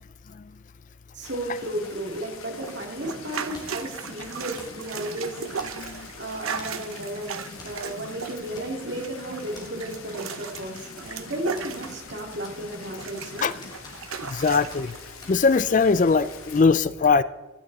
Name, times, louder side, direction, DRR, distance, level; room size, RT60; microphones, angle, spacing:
voice 1, 1.1-13.5, right 1 dB, 55° right, 1 dB, 2.8 m, -34 dB
sound 1, 1.2-16.6, left 5 dB, 85° left, 2.0 m, -45 dB
sound 2, 2.5-12.5 12.8-15.0 15.6-15.7, right 6 dB, 85° right, 0.9 m, -37 dB
sound 3, 3.5-3.9 4.6-4.8 5.6-6.0 6.6-6.9 7.6-7.8 8.0-8.1 8.5-9.0 9.5-9.7 10.6-11.0 11.6-12.2 12.4-13.3 13.6-14.4 14.7-14.8 15.2-15.3, left 1 dB, 20° left, 2.7 m, -47 dB
voice 2, 14.3-14.9 15.3-17.2, left 4 dB, 35° left, 16 dB, 0.4 m, -21 dB
16.0 x 11.5 x 4.1 m, 1.1 s
head